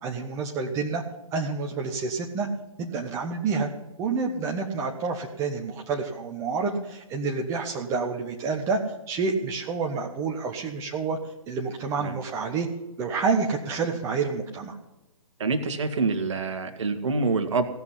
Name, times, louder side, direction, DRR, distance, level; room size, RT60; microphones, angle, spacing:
voice 1, 0.0-1.0 1.3-2.5 2.8-3.7 4.0-11.2 11.5-12.7 13.0-14.8, right 4 dB, 15° right, 1 dB, 0.9 m, -28 dB
voice 2, 15.4-17.6, right 3 dB, 55° right, 7 dB, 1.6 m, -26 dB
16.5 x 5.9 x 9.9 m, 0.98 s
figure-of-eight pair, 135°, 19 cm